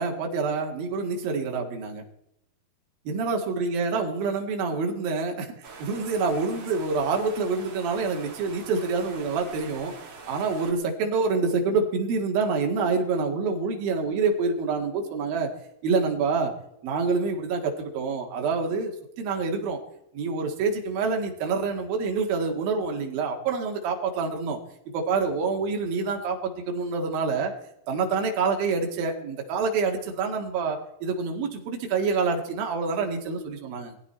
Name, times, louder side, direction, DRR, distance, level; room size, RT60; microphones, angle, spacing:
voice 1, 0.0-2.0 3.1-9.9 10.3-15.5 15.8-16.6 16.8-19.8 20.1-24.6 24.9-27.5 27.9-34.0, right 4 dB, 65° right, 2 dB, 3.6 m, -27 dB
sound 1, 5.6-10.7, right 4 dB, 40° right, 3.2 m, -44 dB
19.5 x 15.0 x 4.4 m, 0.80 s
omnidirectional pair, 4.7 m